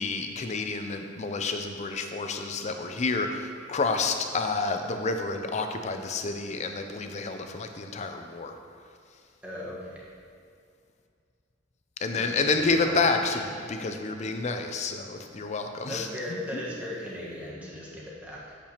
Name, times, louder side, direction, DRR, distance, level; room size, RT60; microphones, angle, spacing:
voice 1, 0.0-8.6 12.0-16.6, left 3 dB, 35° left, 6 dB, 0.5 m, -29 dB
voice 2, 9.4-10.0 12.1-12.9 13.2-13.4 15.9-18.4, left 1 dB, 10° right, -7 dB, 1.4 m, -37 dB
8.5 x 6.7 x 3.0 m, 2.3 s
head